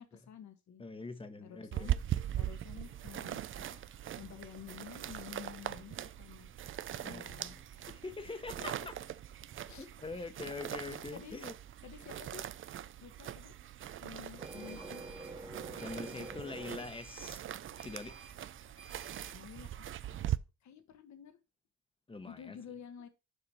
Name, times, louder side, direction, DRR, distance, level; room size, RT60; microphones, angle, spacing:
voice 1, 0.0-0.8 1.4-2.0 2.3-3.4 3.7-3.8 4.2-6.5 6.9-8.0 8.6-8.9 9.7-9.9 10.1-10.3 11.1-11.4 11.8-12.5 13.0-13.5 13.9-15.0 19.3-20.0 20.6-21.4 22.2-23.1, left 9 dB, 65° left, 1.3 m, -51 dB
voice 2, 0.8-1.9 7.1-7.6 8.0-8.8 9.8-11.5 15.8-17.4 17.8-18.2 22.1-22.6, left 3 dB, 20° left, 1.0 m, -44 dB
sound 1, 1.7-20.4, right 11 dB, 45° right, 0.4 m, -41 dB
Printer, 14.4-19.4, right 2 dB, 15° right, 1.2 m, -48 dB
6.9 x 5.1 x 4.2 m
cardioid pair, 90°, 30 cm